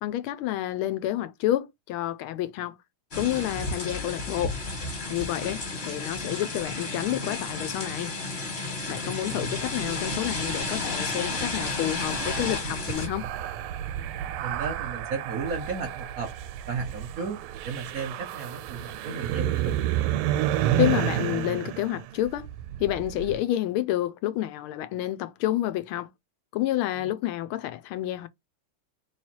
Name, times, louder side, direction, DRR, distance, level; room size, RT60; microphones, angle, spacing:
voice 1, 0.0-2.8 3.1-4.6 5.1-8.1 8.9-13.3 20.8-22.5 22.8-26.1 26.5-28.3, left 14 dB, 85° left, 1.5 m, -29 dB
sound 1, 3.1-13.1, left 3 dB, 30° left, 1.6 m, -32 dB
voice 2, 9.0-9.5 14.4-16.3 16.7-19.8 27.0-27.1, right 5 dB, 60° right, 0.9 m, -34 dB
sound 2, 9.5-23.4, right 12 dB, 85° right, 1.5 m, -31 dB
3.4 x 3.2 x 4.4 m
omnidirectional pair, 2.4 m